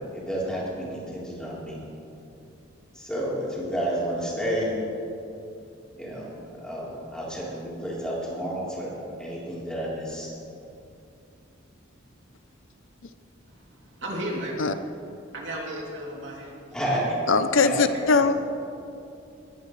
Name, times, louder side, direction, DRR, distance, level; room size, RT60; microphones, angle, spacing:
voice 1, 0.0-1.8 2.9-4.7 6.0-10.3 16.7-17.2 17.6-18.3, equal, 5° left, -7 dB, 3.8 m, -31 dB
voice 2, 13.5-14.6 15.3-16.6, right 1 dB, 65° right, -3 dB, 3.0 m, -34 dB
voice 3, 17.3-18.3, left 4 dB, 80° left, 11 dB, 0.7 m, -20 dB
21.0 x 14.0 x 3.3 m, 2.6 s
head